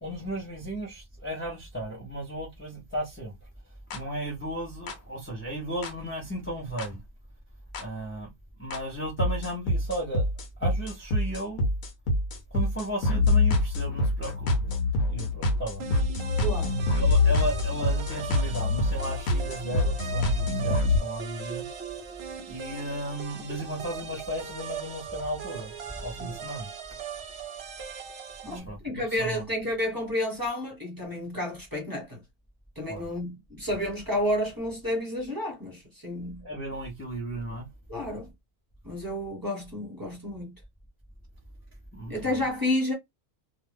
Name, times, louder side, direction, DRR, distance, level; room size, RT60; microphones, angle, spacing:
voice 1, 0.0-3.4 3.9-7.0 7.8-8.3 8.6-10.3 10.6-11.7 12.5-14.6 15.1-15.9 17.0-21.7 22.5-25.7 26.0-26.7 28.4-29.4 32.9-33.1 36.4-37.6 41.9-42.3, right 1 dB, 10° left, 0.6 m, -35 dB
sound 1, 3.9-4.0 4.9-5.0 5.8-5.9 6.8-6.9 7.7-7.8 8.7-8.8 9.2-21.0, left 2 dB, 70° left, 1.1 m, -25 dB
sound 2, 15.8-28.6, right 7 dB, 55° right, 0.8 m, -39 dB
voice 2, 16.4-16.8 20.5-20.6 26.2-26.4 28.4-32.2 32.7-36.5 37.9-38.3 38.8-40.5 42.1-42.9, left 1 dB, 15° right, 1.2 m, -31 dB
2.6 x 2.3 x 3.4 m
omnidirectional pair, 1.5 m